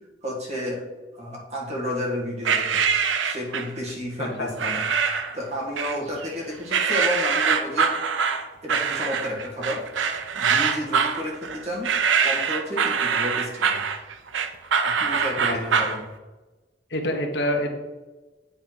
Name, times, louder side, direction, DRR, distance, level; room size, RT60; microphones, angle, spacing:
voice 1, 0.2-0.8 1.1-2.8 3.2-4.9 5.3-7.9 8.6-9.8 10.3-11.9 12.2-13.8 14.8-16.0, left 1 dB, 35° right, -2 dB, 1.7 m, -31 dB
sound 1, 2.4-3.8 4.6-5.3 5.8-6.3 6.7-16.0, right 6 dB, 85° right, 0.6 m, -24 dB
voice 2, 4.2-4.7 15.5-15.8 16.9-17.8, left 1 dB, 60° left, 3 dB, 1.1 m, -27 dB
8.3 x 3.6 x 5.8 m, 1.2 s
head